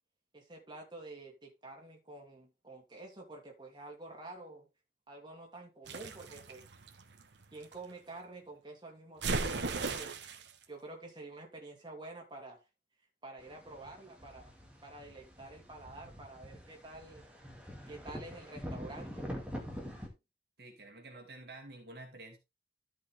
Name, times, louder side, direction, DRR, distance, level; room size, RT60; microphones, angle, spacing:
voice 1, 0.3-4.7 5.1-6.6 7.5-10.2 10.7-12.6 13.2-14.5 14.8-17.3 17.9-19.3, right 2 dB, 25° right, 2.7 m, -49 dB
sound 1, 5.9-7.7 9.2-10.5, right 3 dB, 80° right, 1.2 m, -36 dB
sound 2, 13.4-20.1, equal, 5° right, 2.4 m, -45 dB
voice 2, 20.6-22.4, right 2 dB, 60° right, 2.4 m, -49 dB
13.0 x 5.5 x 3.5 m
head